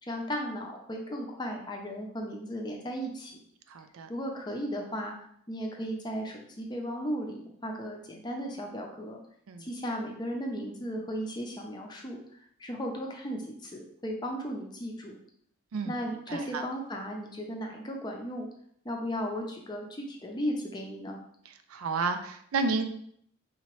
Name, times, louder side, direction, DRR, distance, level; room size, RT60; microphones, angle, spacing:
voice 1, 0.0-3.4 4.1-9.2 9.6-15.1 15.8-18.5 18.8-21.2, equal, 20° left, 1 dB, 0.5 m, -36 dB
voice 2, 3.7-4.1 9.5-9.7 15.7-15.9 16.3-16.6 21.7-22.8, right 4 dB, 90° right, 8 dB, 0.4 m, -31 dB
4.2 x 2.9 x 3.0 m, 0.68 s
head